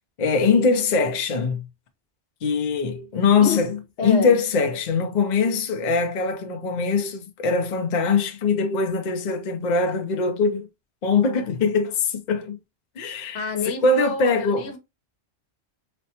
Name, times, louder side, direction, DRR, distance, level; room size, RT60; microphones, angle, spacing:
voice 1, 0.2-1.7 2.4-3.8 4.0-10.7 11.0-12.6 13.0-13.5 13.8-14.6, left 4 dB, 50° left, 0.7 m, -22 dB
voice 2, 4.0-4.4 13.3-14.8, left 4 dB, 80° left, 1.0 m, -28 dB
4.2 x 2.2 x 2.8 m
omnidirectional pair, 1.2 m